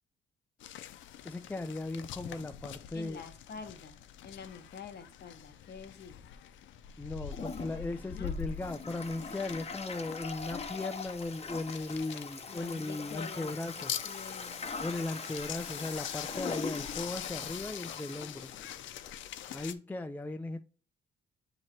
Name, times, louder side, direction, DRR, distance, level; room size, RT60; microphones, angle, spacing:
sound 1, 0.6-19.7, left 9 dB, 75° left, 0.5 m, -44 dB
voice 1, 1.2-3.2 7.0-13.9 14.8-18.5 19.5-20.6, left 2 dB, 10° left, 0.4 m, -37 dB
voice 2, 2.9-6.2 8.1-8.4 12.1-14.7, left 6 dB, 55° left, 1.0 m, -47 dB
Toilet flush, 7.3-19.1, left 4 dB, 30° left, 0.9 m, -42 dB
7.6 x 3.0 x 4.3 m
cardioid pair, 90°, 20 cm